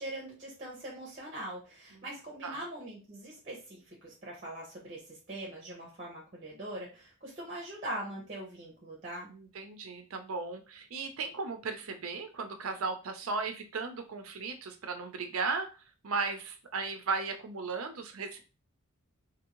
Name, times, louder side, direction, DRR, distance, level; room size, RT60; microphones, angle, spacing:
voice 1, 0.0-9.3, right 1 dB, 30° right, -2 dB, 0.9 m, -42 dB
voice 2, 9.3-18.4, right 4 dB, 70° right, 6 dB, 0.6 m, -36 dB
2.8 x 2.7 x 2.9 m, 0.32 s
head